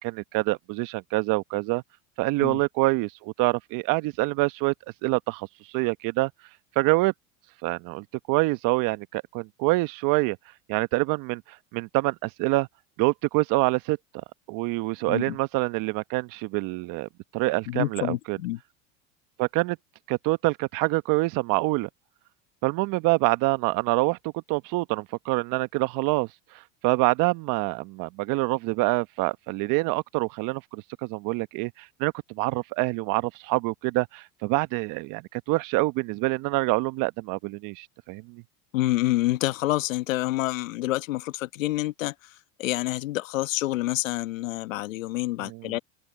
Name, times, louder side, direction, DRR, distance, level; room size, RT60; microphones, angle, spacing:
voice 1, 0.0-1.8 2.2-4.7 5.0-6.3 6.7-7.1 7.6-10.4 10.7-12.7 13.0-14.0 14.5-18.4 19.4-19.8 20.1-21.9 22.6-24.2 24.5-38.4 45.4-45.7, right 22 dB, 55° right, 1.1 m, -26 dB
voice 2, 17.7-18.6 38.7-45.8, left 17 dB, 85° left, 1.4 m, -28 dB
open air
hypercardioid pair, 95°, 38 cm